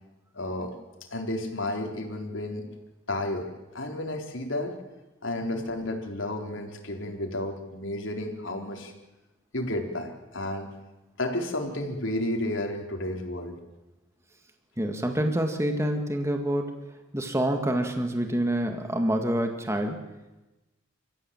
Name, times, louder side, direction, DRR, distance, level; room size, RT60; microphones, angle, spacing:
voice 1, 0.3-0.7 1.1-2.7 3.1-4.8 5.2-8.9 9.5-10.7 11.2-13.6, left 1 dB, 75° left, 3 dB, 4.2 m, -32 dB
voice 2, 14.8-16.7 17.1-20.0, right 1 dB, 15° right, 5 dB, 2.0 m, -27 dB
29.0 x 15.0 x 9.0 m, 1.1 s
head